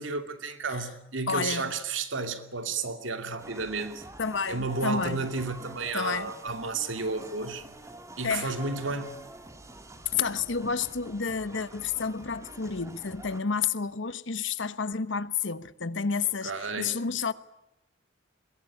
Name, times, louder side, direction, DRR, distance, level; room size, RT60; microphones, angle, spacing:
voice 1, 0.0-4.0 4.5-7.6 8.2-9.2 16.4-16.9, right 3 dB, 80° right, 2.6 m, -32 dB
voice 2, 1.3-1.7 4.2-5.3 5.9-6.3 8.2-8.6 10.1-17.3, left 5 dB, 70° left, 1.1 m, -30 dB
sound 1, 3.4-13.4, right 2 dB, 15° right, 2.3 m, -47 dB
22.0 x 21.0 x 9.9 m
head